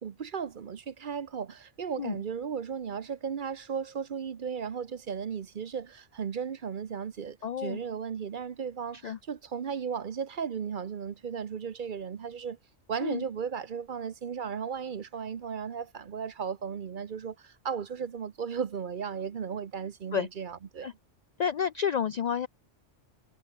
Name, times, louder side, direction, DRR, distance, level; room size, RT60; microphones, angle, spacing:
voice 1, 0.0-12.6 12.9-20.9, right 7 dB, 45° right, 0.8 m, -35 dB
voice 2, 7.4-7.8 9.0-9.2 13.0-13.2 20.1-20.3 20.8-20.9 21.4-22.5, left 7 dB, 85° left, 0.3 m, -30 dB
omnidirectional pair, 1.3 m